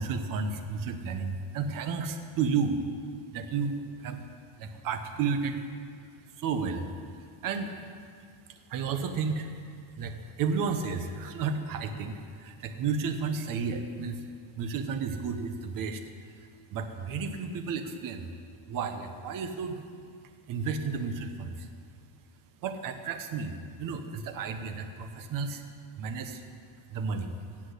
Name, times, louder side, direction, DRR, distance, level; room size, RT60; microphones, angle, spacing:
voice 1, 0.0-2.8 3.3-4.2 4.6-5.6 6.4-6.9 7.4-7.8 8.7-9.5 10.0-14.2 14.6-16.0 16.7-18.2 18.7-19.8 20.5-21.7 22.6-25.6 26.0-26.4 26.9-27.3, right 5 dB, 40° right, 7 dB, 1.0 m, -32 dB
16.5 x 6.2 x 8.2 m, 2.2 s
cardioid pair, 165°, 49 cm